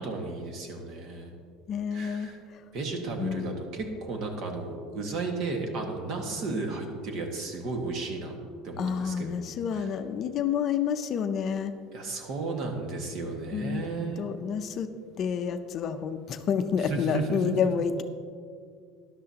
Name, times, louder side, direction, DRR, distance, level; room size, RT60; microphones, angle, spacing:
voice 1, 0.0-1.3 1.9-2.4 2.7-8.3 8.6-9.9 11.9-14.3 16.8-17.8, right 3 dB, 50° right, 2 dB, 1.7 m, -34 dB
voice 2, 1.7-2.6 3.2-3.6 8.8-11.7 13.5-13.8 14.2-14.9 15.2-18.0, left 7 dB, 40° left, 9 dB, 0.5 m, -29 dB
13.0 x 11.0 x 2.9 m, 2.2 s
cardioid pair, 135°, 0 cm